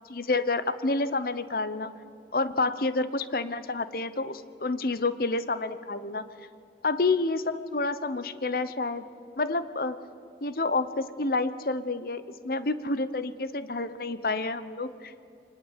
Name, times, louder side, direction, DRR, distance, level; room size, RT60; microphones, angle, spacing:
voice 1, 0.1-1.9 2.3-6.2 6.8-9.1 9.4-10.0 10.4-15.1, left 3 dB, 55° left, 13 dB, 0.9 m, -29 dB
23.5 x 20.5 x 8.3 m, 2.6 s
head